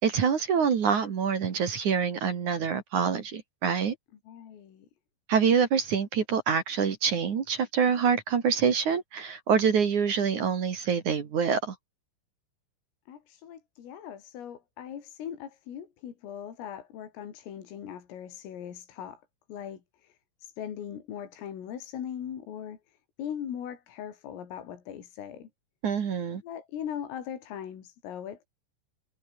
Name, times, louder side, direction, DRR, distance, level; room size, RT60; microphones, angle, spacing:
voice 1, 0.0-3.9 5.3-11.7 25.8-26.4, right 6 dB, 45° right, 2.9 m, -26 dB
voice 2, 4.3-4.9 13.1-19.2 19.5-25.5 26.4-28.5, left 9 dB, 80° left, 6.0 m, -40 dB
omnidirectional pair, 5.9 m